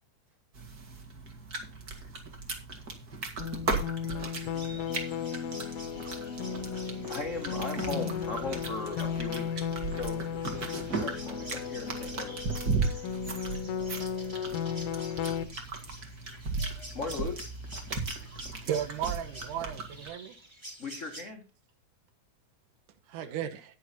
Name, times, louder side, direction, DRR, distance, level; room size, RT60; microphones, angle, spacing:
sound 1, 0.5-20.1, right 4 dB, 35° right, 1.9 m, -37 dB
sound 2, 3.4-15.4, left 7 dB, 65° left, 1.5 m, -35 dB
voice 1, 4.0-5.8 10.9-11.0 12.8-12.9 14.1-14.9 16.9-17.0 18.3-18.4 23.2-23.5, right 1 dB, 65° right, 5.2 m, -53 dB
sound 3, 4.3-21.2, right 1 dB, 10° right, 1.5 m, -49 dB
voice 2, 7.1-12.5 16.9-17.4 20.8-21.4, left 3 dB, 80° left, 0.6 m, -38 dB
voice 3, 18.7-20.4 23.1-23.6, right 9 dB, 90° right, 2.5 m, -34 dB
9.4 x 9.3 x 4.0 m
omnidirectional pair, 3.5 m